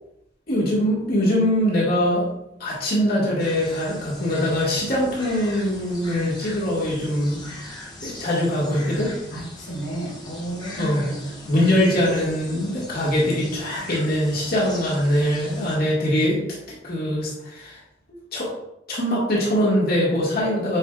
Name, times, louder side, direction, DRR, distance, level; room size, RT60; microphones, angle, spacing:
voice 1, 0.5-2.3 2.6-7.4 8.0-9.1 10.8-11.0 11.5-16.4 16.7-17.8 18.1-18.5 18.9-20.8, equal, 55° left, -5 dB, 2.0 m, -22 dB
sound 1, 3.4-15.8, left 1 dB, 25° left, 1.3 m, -40 dB
voice 2, 9.3-11.4, right 1 dB, 85° left, -4 dB, 1.9 m, -32 dB
8.7 x 4.7 x 2.5 m, 0.83 s
head